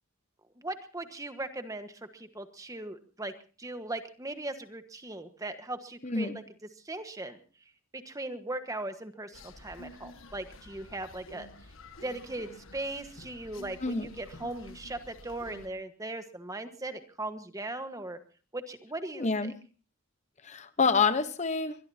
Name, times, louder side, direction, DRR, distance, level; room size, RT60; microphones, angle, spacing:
voice 1, 0.6-6.4 6.8-7.4 7.9-11.5 12.0-18.2 18.5-19.5, right 2 dB, 15° right, 9 dB, 1.3 m, -39 dB
voice 2, 6.0-6.4 13.8-14.1 19.1-19.5 20.4-21.8, left 4 dB, 35° left, 11 dB, 1.0 m, -27 dB
sound 1, 9.3-15.7, left 2 dB, 70° left, 1.6 m, -50 dB
23.0 x 21.5 x 2.8 m, 0.37 s
head